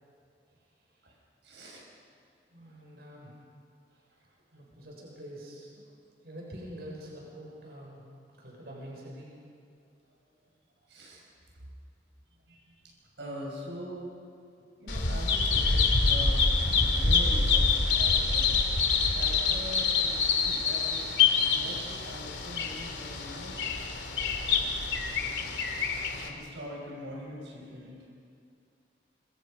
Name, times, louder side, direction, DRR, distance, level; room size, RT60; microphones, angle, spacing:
voice 1, 1.4-1.9 4.1-4.3 10.8-11.2 11.5-11.6 12.5-14.1 14.7-18.5 19.1-23.9 24.2-24.5 26.1-28.1, equal, 85° right, -3 dB, 5.8 m, -43 dB
voice 2, 2.5-3.3 4.5-5.9 6.2-8.0 8.3-9.3, equal, 60° right, -3 dB, 6.5 m, -45 dB
Bird vocalization bird call bird song, 14.9-26.3, left 4 dB, 80° left, 2.7 m, -26 dB
26.0 x 24.5 x 5.3 m, 2.5 s
head